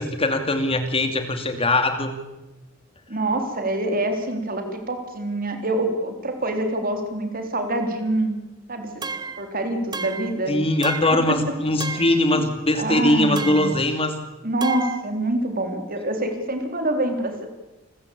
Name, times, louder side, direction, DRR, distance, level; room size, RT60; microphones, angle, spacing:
voice 1, 0.0-2.1 10.5-14.1, left 1 dB, 30° left, 7 dB, 2.5 m, -21 dB
voice 2, 3.1-8.4 8.7-9.0 9.4-10.6 11.1-11.4 11.9-12.4 12.7-13.7 14.4-17.5, right 1 dB, 45° right, 5 dB, 3.8 m, -26 dB
sound 1, 9.0-9.5 9.9-10.4 10.8-11.3 11.8-12.2 13.4-13.8 14.6-15.0, right 4 dB, 20° right, 1.0 m, -32 dB
28.5 x 15.0 x 8.6 m, 1.1 s
head